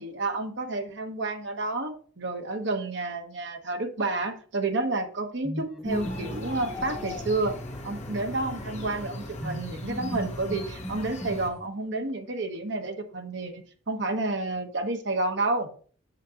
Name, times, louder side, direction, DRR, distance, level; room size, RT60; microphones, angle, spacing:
voice 1, 0.0-7.5 7.8-15.7, right 2 dB, 60° right, 5 dB, 1.1 m, -30 dB
sound 1, 5.4-8.0 9.4-11.9, equal, ahead, 0.7 m, -37 dB
sound 2, 5.9-11.5, left 1 dB, 35° left, 1.8 m, -38 dB
8.1 x 6.6 x 2.9 m, 0.43 s
head